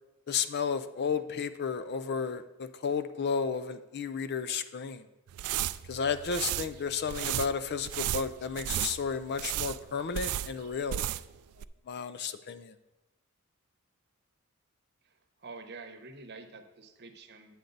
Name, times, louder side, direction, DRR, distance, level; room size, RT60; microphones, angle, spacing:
voice 1, 0.3-5.0 5.9-11.0 11.9-12.7, left 6 dB, 50° left, 12 dB, 0.4 m, -33 dB
sound 1, 5.3-11.4 11.6-11.7, right 12 dB, 85° right, 0.3 m, -34 dB
voice 2, 15.4-17.5, right 3 dB, 50° right, 5 dB, 0.9 m, -47 dB
8.4 x 7.9 x 3.9 m, 1.0 s
head